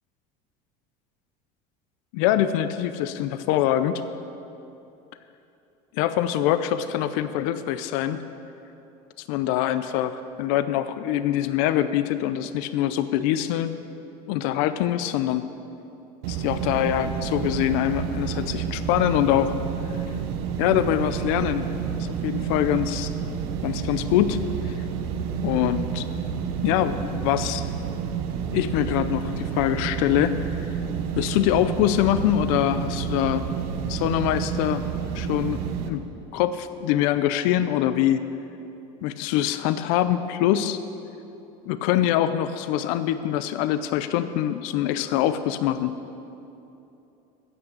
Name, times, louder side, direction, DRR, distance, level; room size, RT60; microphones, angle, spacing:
voice 1, 2.1-4.0 5.9-8.2 9.3-13.7 14.3-15.4 16.3-19.6 20.6-21.7 22.0-23.1 23.6-24.7 25.4-26.1 26.6-27.7 28.5-30.5 31.2-33.5 33.9-34.8 35.1-35.6 35.9-36.0 36.3-38.2 39.0-40.8 41.7-45.9, left 12 dB, 75° left, 12 dB, 0.6 m, -24 dB
sound 1, 16.2-35.9, right 7 dB, 85° right, 1.0 m, -30 dB
14.5 x 6.1 x 8.5 m, 2.9 s
supercardioid pair, 125°, 18 cm